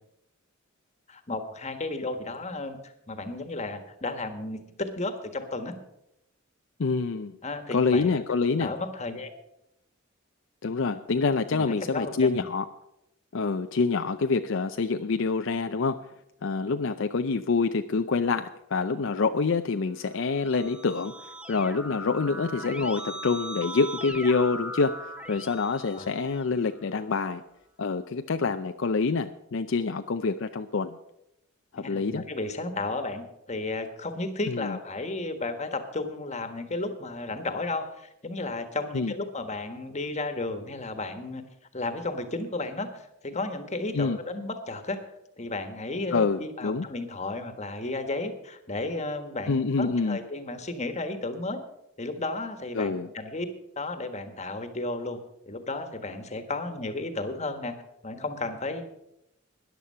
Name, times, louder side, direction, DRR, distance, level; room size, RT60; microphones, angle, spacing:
voice 1, 1.1-5.8 7.4-8.2 8.6-9.3 11.1-11.2 11.5-12.4 25.9-26.1 31.8-41.4 41.7-45.0 45.4-51.6 52.0-53.5 53.8-55.2 55.5-57.8 58.0-58.8, left 2 dB, 35° left, 8 dB, 1.4 m, -33 dB
voice 2, 6.8-7.4 7.7-8.7 10.6-12.7 13.3-16.0 16.4-25.0 25.3-27.4 27.8-31.0 31.7-32.2 34.5-34.8 38.9-39.1 43.9-44.2 46.1-46.9 49.5-50.2 52.7-53.1, left 4 dB, 65° left, 8 dB, 0.5 m, -26 dB
Keyboard (musical), 20.1-26.8, equal, 5° right, 1.0 m, -39 dB
14.0 x 10.5 x 5.6 m, 0.83 s
head